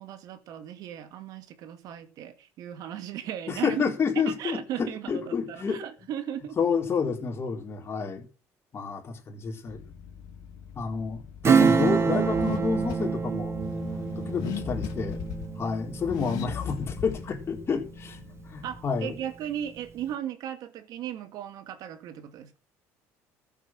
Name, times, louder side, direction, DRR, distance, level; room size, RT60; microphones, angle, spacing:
voice 1, 0.0-3.8 4.2-6.6 18.6-22.6, right 10 dB, 70° right, 2.0 m, -36 dB
voice 2, 3.5-5.8 6.6-8.3 8.7-9.8 10.7-13.6 14.2-15.2 15.6-18.2 18.5-19.2, left 5 dB, 35° left, 4.2 m, -29 dB
Car / Accelerating revving vroom, 9.7-18.9, left 8 dB, 75° left, 2.6 m, -39 dB
Acoustic guitar / Strum, 11.4-17.6 18.0-18.1, right 6 dB, 40° right, 1.4 m, -26 dB
13.5 x 8.3 x 6.2 m
supercardioid pair, 90°, 7 cm